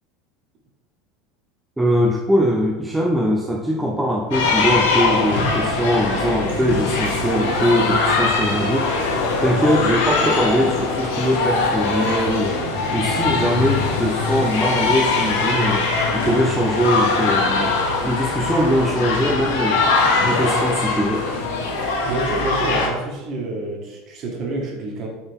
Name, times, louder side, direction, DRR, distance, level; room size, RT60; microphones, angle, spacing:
voice 1, 1.8-9.0 9.4-12.6 12.9-17.7 18.0-21.3, equal, 5° right, -2 dB, 0.6 m, -21 dB
sound 1, 4.3-22.9, left 3 dB, 85° left, 1.4 m, -21 dB
voice 2, 22.0-25.1, right 2 dB, 40° right, -1 dB, 1.7 m, -28 dB
7.7 x 4.0 x 3.6 m, 1.1 s
supercardioid pair, 145°, 0 cm